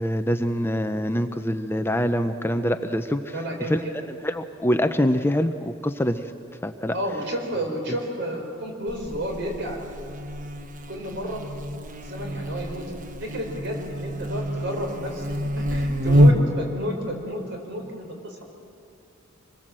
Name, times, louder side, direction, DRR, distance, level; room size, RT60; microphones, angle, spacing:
voice 1, 0.0-3.8 4.1-6.3 6.6-6.9, equal, 10° left, 8 dB, 0.6 m, -25 dB
voice 2, 3.3-3.9 6.9-9.8 10.9-11.4 12.0-12.9 13.2-18.4, equal, 55° right, 2 dB, 5.0 m, -31 dB
Buzz, 8.9-16.7, equal, 40° right, 1.1 m, -26 dB
26.0 x 21.5 x 7.6 m, 2.6 s
head